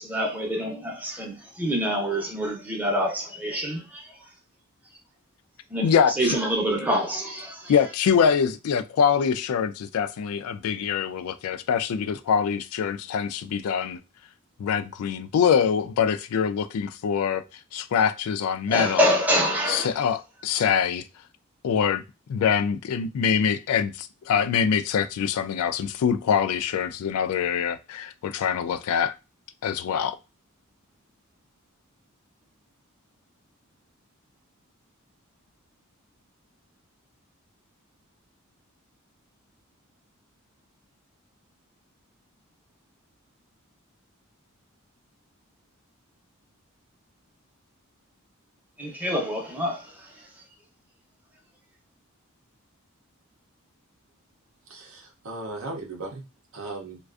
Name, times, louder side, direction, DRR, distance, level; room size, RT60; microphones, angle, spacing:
voice 1, 0.0-4.1 5.7-5.9 6.2-7.7 18.7-19.9 48.8-49.9, equal, 10° right, 0.6 m, -26 dB
voice 2, 5.8-6.1 7.7-14.0 14.6-17.4 17.7-19.0 19.7-21.0 21.6-22.0 22.3-29.1 29.6-30.2, left 7 dB, 85° left, 0.3 m, -24 dB
voice 3, 54.7-56.2 56.5-57.0, right 2 dB, 65° right, 0.6 m, -37 dB
2.4 x 2.3 x 2.3 m
head